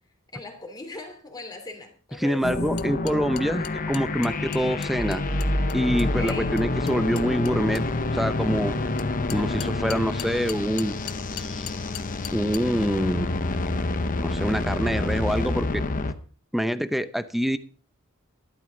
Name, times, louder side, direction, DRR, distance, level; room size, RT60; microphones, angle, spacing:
voice 1, 0.3-2.5 6.0-6.5, left 2 dB, 20° left, 3 dB, 2.9 m, -39 dB
voice 2, 2.2-5.2 5.7-8.7 9.3-11.0 11.3-11.7 12.3-13.3 14.2-15.8 16.5-17.6, equal, ahead, 12 dB, 0.7 m, -26 dB
sound 1, 2.4-16.1, left 2 dB, 40° left, 0.9 m, -28 dB
sound 2, 2.8-7.9 9.0-12.6, left 12 dB, 85° left, 0.8 m, -39 dB
sound 3, 4.9-7.8, equal, 50° right, 2.6 m, -30 dB
14.0 x 12.0 x 3.9 m, 0.40 s
head